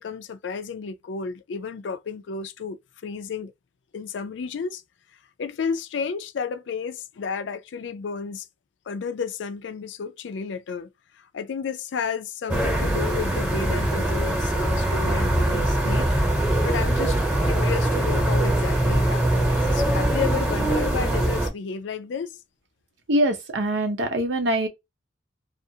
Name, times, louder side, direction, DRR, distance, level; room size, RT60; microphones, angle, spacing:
voice 1, 0.0-3.5 3.9-4.8 5.4-8.5 8.9-10.9 11.3-16.1 16.6-22.3, left 5 dB, 75° left, 0.4 m, -32 dB
sound 1, 12.5-21.5, right 1 dB, 10° right, 0.9 m, -22 dB
voice 2, 23.1-24.7, right 1 dB, 75° right, 0.7 m, -23 dB
2.4 x 2.4 x 2.7 m
head